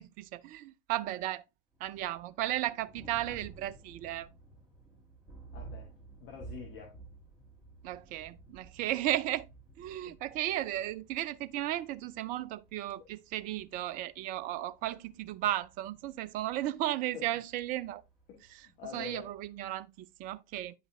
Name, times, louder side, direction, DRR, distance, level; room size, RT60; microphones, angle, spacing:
voice 1, 0.0-1.4 1.8-4.3 7.8-9.5 9.8-18.0 18.9-20.7, right 14 dB, 30° right, 0.4 m, -35 dB
Thunder, 1.7-19.7, right 3 dB, ahead, 3.9 m, -54 dB
voice 2, 5.5-5.9 6.2-6.9 10.0-10.2 17.1-17.4 18.3-19.3, left 8 dB, 40° left, 1.6 m, -46 dB
9.3 x 5.4 x 2.7 m
figure-of-eight pair, 85°, 29 cm